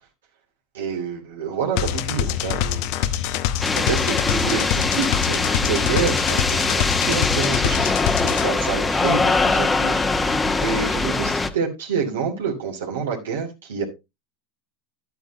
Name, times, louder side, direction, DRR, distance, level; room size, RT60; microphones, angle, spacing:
voice 1, 0.7-3.2 3.7-13.8, right 6 dB, 85° right, 0 dB, 2.9 m, -28 dB
sound 1, 1.8-8.5, left 11 dB, 60° left, 0.8 m, -25 dB
sound 2, 3.6-11.5, left 3 dB, 15° left, 1.2 m, -22 dB
11.5 x 8.9 x 2.9 m, 0.24 s
hypercardioid pair, 100°, 0 cm